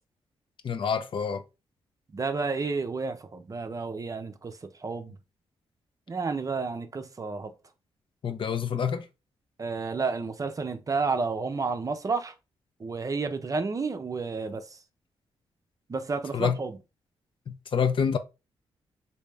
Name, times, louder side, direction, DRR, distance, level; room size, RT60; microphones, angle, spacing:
voice 1, 0.6-1.4 8.2-9.0 16.3-16.6 17.5-18.2, left 7 dB, 55° left, 0.5 m, -27 dB
voice 2, 2.1-4.5 4.8-5.2 6.1-7.5 9.6-12.3 12.8-14.7 15.9-16.8, right 4 dB, 35° right, 0.5 m, -31 dB
3.2 x 2.7 x 3.2 m
cardioid pair, 65°, 10 cm